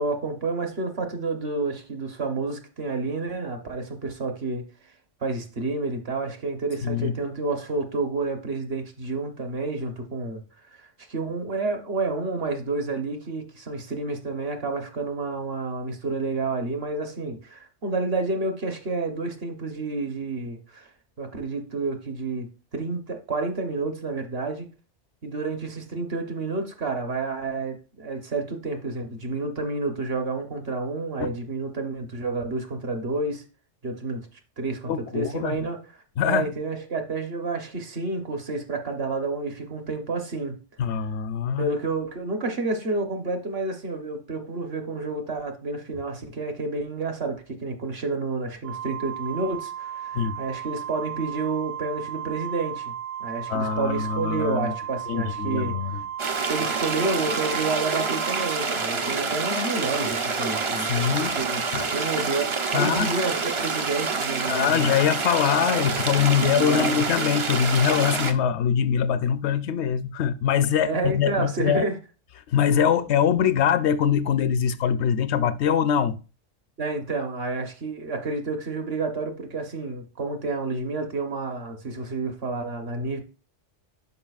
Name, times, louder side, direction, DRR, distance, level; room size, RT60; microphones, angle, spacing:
voice 1, 0.0-4.9 5.2-10.4 10.7-20.9 21.2-24.7 25.2-33.4 33.8-34.3 34.6-35.8 36.2-40.6 41.6-52.9 53.2-55.8 56.5-60.9 61.4-61.6 61.9-64.9 66.4-67.0 70.8-72.0 76.8-83.2, right 3 dB, 55° right, 1.2 m, -29 dB
voice 2, 6.8-7.1 31.2-31.3 34.9-35.6 36.2-36.5 40.8-41.7 50.1-50.4 53.5-54.7 55.1-56.0 60.9-61.4 61.7-61.9 62.7-63.1 64.5-71.9 72.5-76.2, left 8 dB, 70° left, 0.8 m, -23 dB
Organ, 48.6-59.4, right 10 dB, 90° right, 0.9 m, -35 dB
sound 1, 56.2-68.3, right 4 dB, 40° right, 0.4 m, -27 dB
11.0 x 4.8 x 2.4 m
omnidirectional pair, 1.2 m